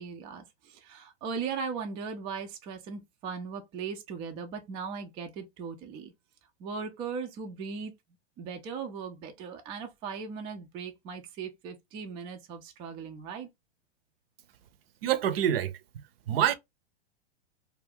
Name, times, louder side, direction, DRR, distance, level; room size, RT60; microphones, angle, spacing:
voice 1, 0.0-6.1 6.6-7.9 8.4-13.5, right 5 dB, 15° right, 0.3 m, -38 dB
voice 2, 15.0-15.8 16.3-16.5, right 10 dB, 60° right, 0.6 m, -26 dB
2.5 x 2.3 x 3.4 m
hypercardioid pair, 120°, 34 cm